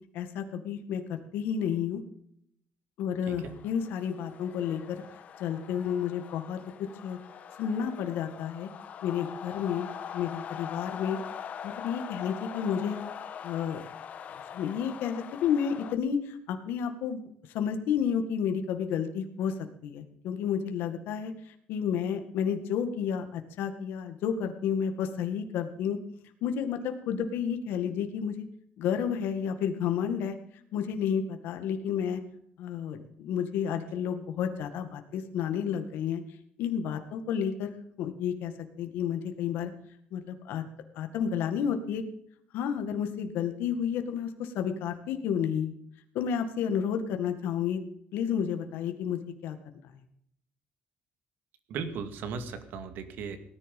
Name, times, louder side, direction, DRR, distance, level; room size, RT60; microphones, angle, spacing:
voice 1, 0.1-2.0 3.0-5.0 5.4-7.2 7.6-8.7 9.0-9.9 10.1-11.2 11.6-13.0 13.4-13.8 14.5-17.2 17.5-19.5 19.8-26.0 26.4-28.4 28.8-30.4 30.7-32.2 32.6-36.2 36.6-37.7 38.0-38.5 38.8-39.7 40.1-40.6 41.0-42.0 42.5-45.7 46.1-47.8 48.1-49.6, left 8 dB, 85° left, 6 dB, 2.0 m, -31 dB
sound 1, 3.3-16.0, left 8 dB, 45° left, 1.4 m, -43 dB
voice 2, 51.7-53.4, right 5 dB, 70° right, 9 dB, 2.2 m, -37 dB
18.5 x 10.5 x 5.3 m, 0.70 s
cardioid pair, 165°, 3 cm